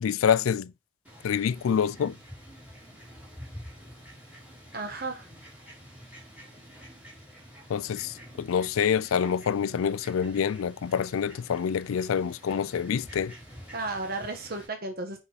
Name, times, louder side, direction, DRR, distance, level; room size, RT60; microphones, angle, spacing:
voice 1, 0.0-0.7 1.2-2.1 7.7-13.3, left 7 dB, 85° left, 0.4 m, -26 dB
Fowl, 1.0-14.7, equal, 5° right, 3.5 m, -48 dB
voice 2, 4.7-5.3 13.7-15.2, right 2 dB, 45° right, 1.4 m, -33 dB
8.0 x 5.5 x 4.0 m
head